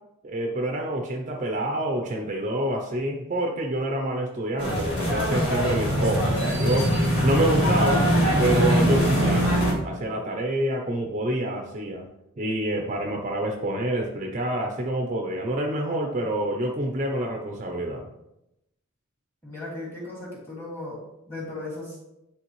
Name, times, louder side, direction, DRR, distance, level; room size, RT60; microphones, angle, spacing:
voice 1, 0.2-6.9 7.2-8.0 8.4-9.5 9.8-12.0 12.4-18.1, right 1 dB, 35° right, 1 dB, 0.6 m, -27 dB
sound 1, 4.6-9.7, equal, 55° left, 2.1 m, -22 dB
voice 2, 19.4-21.0 21.3-22.0, left 2 dB, 10° left, -5 dB, 2.2 m, -36 dB
9.7 x 3.5 x 3.1 m, 0.88 s
head